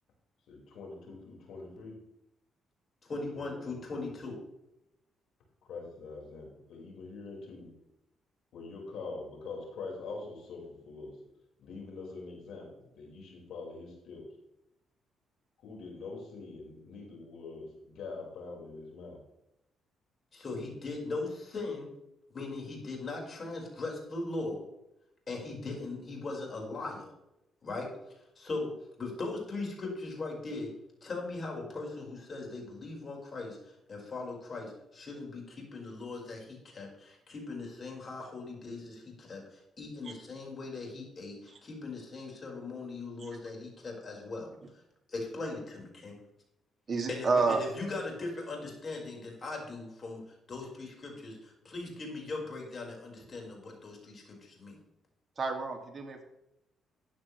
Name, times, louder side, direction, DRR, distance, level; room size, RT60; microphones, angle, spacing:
voice 1, 0.5-2.0 3.3-4.0 5.6-7.7 8.5-11.1 11.6-14.2 15.6-19.2, left 3 dB, 75° left, -2 dB, 5.0 m, -44 dB
voice 2, 3.0-4.4 20.3-21.9 22.3-24.6 25.3-27.1 27.6-27.9 28.3-28.7 29.0-30.7 31.0-44.5 45.1-46.2 47.1-50.2 50.5-54.8, left 3 dB, 40° left, -1 dB, 5.0 m, -39 dB
voice 3, 46.9-47.7 55.4-56.2, right 4 dB, 40° right, 3 dB, 2.3 m, -30 dB
13.5 x 9.4 x 3.3 m, 0.86 s
cardioid pair, 90°, 0 cm